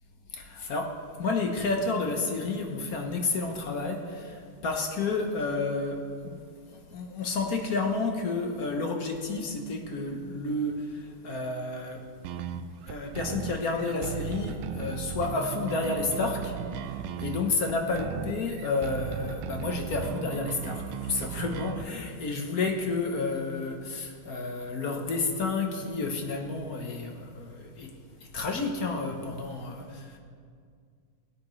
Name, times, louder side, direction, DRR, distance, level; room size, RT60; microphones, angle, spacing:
voice 1, 0.3-6.4 6.7-12.0 12.9-27.9 28.2-30.2, left 3 dB, 55° left, 2 dB, 1.3 m, -31 dB
sound 1, 12.2-21.9, right 8 dB, 90° right, 1.4 m, -36 dB
18.0 x 8.6 x 3.2 m, 2.2 s
omnidirectional pair, 2.1 m